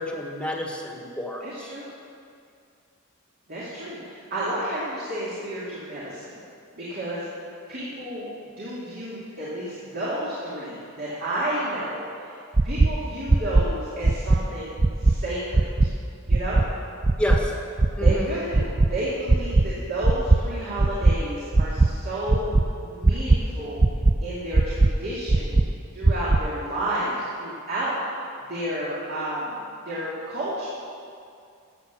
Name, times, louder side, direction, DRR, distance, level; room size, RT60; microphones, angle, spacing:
voice 1, 0.0-1.7 17.2-17.5 18.0-18.3, left 1 dB, 5° left, 0 dB, 1.6 m, -29 dB
voice 2, 1.4-1.8 3.5-6.4 6.7-7.4 7.7-8.3 8.6-12.4 12.6-15.9 16.3-16.6 18.0-22.6 22.8-23.8 24.2-25.6 25.9-30.7, right 1 dB, 50° right, -8 dB, 2.6 m, -31 dB
sound 1, 12.6-12.9 13.3-13.6 14.0-14.4 14.8-15.1 15.5-15.9 16.3-16.6 17.0-17.4 17.8-18.1 18.5-18.9 19.3-19.6 20.0-20.4 20.8-21.1 21.5-21.9 22.3-22.6 23.0-23.4 23.8-24.1 24.5-24.9 25.3-25.6 26.0-26.4, right 2 dB, 20° right, 0.3 m, -17 dB
13.5 x 8.0 x 7.0 m, 2.4 s
head